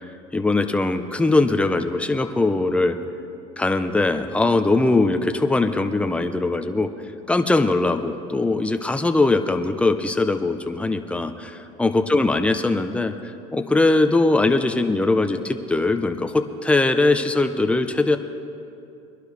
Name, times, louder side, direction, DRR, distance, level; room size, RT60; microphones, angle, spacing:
voice 1, 0.3-3.0 3.6-6.9 7.3-13.1 13.5-18.2, left 2 dB, 10° left, 7 dB, 0.8 m, -21 dB
22.5 x 11.5 x 3.4 m, 2.6 s
supercardioid pair, 115°, 15 cm